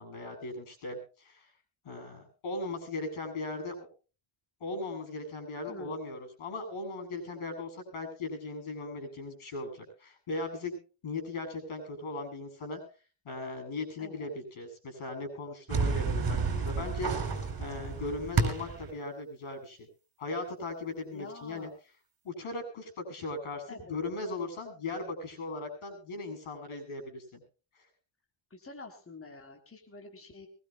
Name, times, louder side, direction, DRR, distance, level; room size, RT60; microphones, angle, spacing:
voice 1, 0.0-1.5 1.8-3.9 4.6-10.8 11.0-12.8 13.2-17.1 17.6-19.9 20.2-21.7 22.2-27.4, left 2 dB, 85° left, 9 dB, 7.7 m, -38 dB
voice 2, 14.0-14.3 21.1-21.7 23.7-24.0 28.5-30.5, left 3 dB, 25° left, 3 dB, 3.4 m, -47 dB
sound 1, 15.7-18.9, right 4 dB, 45° right, 5.3 m, -30 dB
23.0 x 20.5 x 2.2 m, 0.37 s
wide cardioid pair, 150°, 48 cm